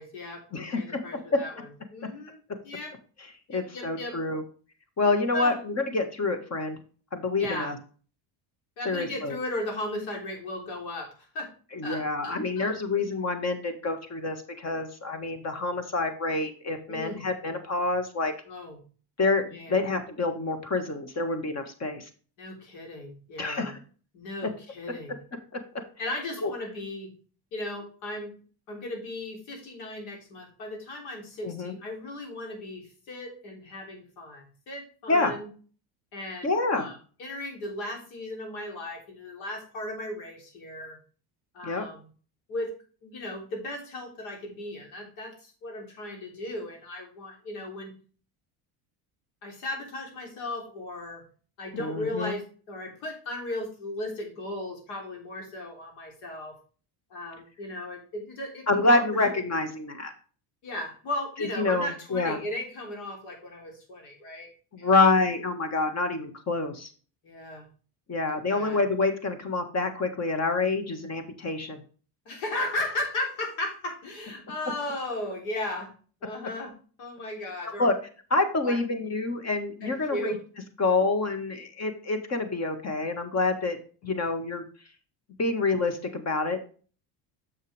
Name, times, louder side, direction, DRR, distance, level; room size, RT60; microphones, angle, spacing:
voice 1, 0.0-2.9 3.5-4.2 5.3-5.6 7.4-7.7 8.8-11.5 11.8-12.8 16.9-17.2 18.5-18.8 19.4-19.9 22.4-23.8 24.1-25.2 26.0-27.1 27.5-28.3 28.7-35.5 36.1-41.0 41.5-42.1 42.5-42.7 43.0-47.9 49.4-51.2 51.6-56.6 57.1-59.4 60.6-64.5 64.8-64.9 67.2-67.7 68.3-68.8 72.3-75.9 76.2-76.7 77.0-77.9 78.6-78.8 79.8-80.4, left 1 dB, 85° left, 1 dB, 3.6 m, -36 dB
voice 2, 0.5-1.0 3.5-4.4 5.0-6.8 7.1-7.8 8.9-9.4 11.7-18.3 19.2-22.1 23.4-23.8 25.5-25.6 26.4-26.5 31.4-31.7 35.1-35.3 36.4-36.9 41.6-41.9 51.7-52.3 58.7-60.1 61.6-62.4 64.7-66.9 68.1-71.8 77.8-77.9 78.3-80.4 80.8-83.8 84.0-84.7 85.4-86.6, left 3 dB, 35° left, 8 dB, 1.7 m, -27 dB
6.9 x 6.5 x 3.4 m, 0.39 s
cardioid pair, 110°, 47 cm